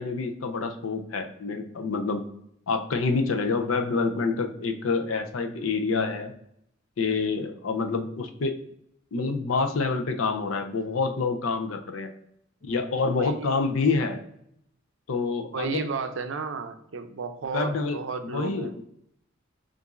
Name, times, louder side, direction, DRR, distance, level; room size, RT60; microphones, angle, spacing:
voice 1, 0.0-2.2 2.7-6.3 7.0-8.5 9.1-12.1 12.6-14.2 15.1-15.8 17.5-18.0 18.3-18.7, left 4 dB, 85° left, 6 dB, 0.5 m, -27 dB
voice 2, 13.1-13.6 15.5-18.7, right 5 dB, 70° right, 8 dB, 0.5 m, -33 dB
6.8 x 2.5 x 2.4 m, 0.74 s
head